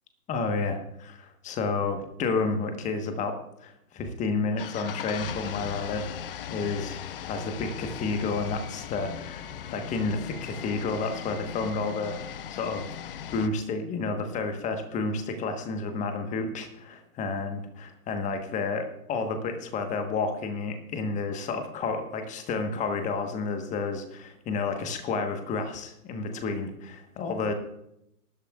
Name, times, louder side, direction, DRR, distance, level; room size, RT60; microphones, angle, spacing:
voice 1, 0.3-6.1 6.5-12.2 12.5-12.9 13.3-27.5, left 4 dB, 15° left, 7 dB, 1.2 m, -31 dB
sound 1, 4.6-13.5, left 9 dB, 40° left, 0.6 m, -38 dB
19.0 x 11.5 x 2.4 m, 0.79 s
figure-of-eight pair, 125°, 46 cm